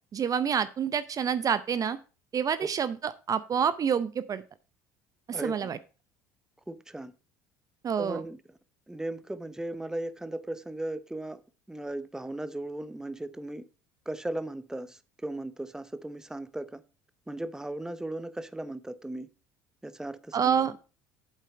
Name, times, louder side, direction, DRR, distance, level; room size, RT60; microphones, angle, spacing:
voice 1, 0.1-2.0 2.3-4.4 5.3-5.8 7.8-8.2 20.3-20.7, right 7 dB, 40° right, 0.7 m, -28 dB
voice 2, 5.3-5.7 6.7-7.1 8.0-8.4 8.9-11.4 11.7-13.6 14.1-16.8 17.3-19.3 19.8-20.8, right 1 dB, 5° right, 0.9 m, -37 dB
8.3 x 7.5 x 4.4 m
hypercardioid pair, 70°, 10 cm